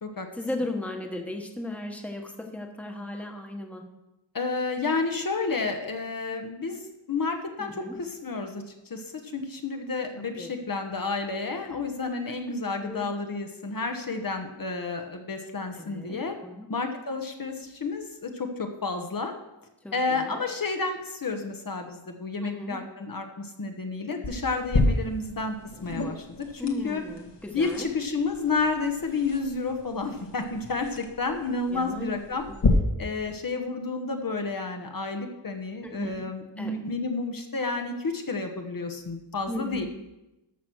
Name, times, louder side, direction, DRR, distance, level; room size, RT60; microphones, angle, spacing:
voice 1, 0.3-3.8 7.6-8.0 10.4-10.5 12.3-12.4 12.8-13.1 15.8-16.7 19.8-20.4 22.4-22.8 26.6-27.9 31.7-32.1 32.6-32.7 35.8-36.3 36.6-36.7 39.5-39.9, left 1 dB, 5° left, 3 dB, 1.2 m, -36 dB
voice 2, 4.3-6.8 7.1-16.4 16.7-19.3 19.9-27.0 27.5-32.5 33.0-39.9, left 3 dB, 45° left, 4 dB, 1.1 m, -31 dB
sound 1, 24.2-32.7, left 3 dB, 60° left, 1.5 m, -32 dB
13.0 x 6.0 x 6.2 m, 0.97 s
wide cardioid pair, 150°, 48 cm